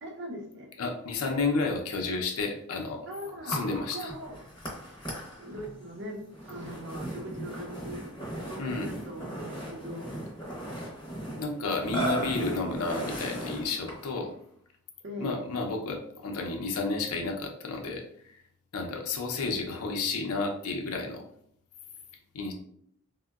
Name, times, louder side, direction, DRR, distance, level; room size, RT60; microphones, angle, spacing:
voice 1, 0.0-0.7 3.1-3.6 3.9-4.4 5.4-8.0 8.5-10.3 12.0-12.2 15.0-15.4, equal, 50° right, 0 dB, 0.6 m, -40 dB
voice 2, 0.8-3.0 3.4-4.1 8.6-8.9 11.4-14.3 15.2-18.4 18.7-21.2 22.3-22.5, left 3 dB, 80° left, 3 dB, 0.5 m, -31 dB
Burping eructation, 3.5-14.2, equal, 20° left, 0.7 m, -37 dB
3.7 x 2.1 x 2.2 m, 0.67 s
head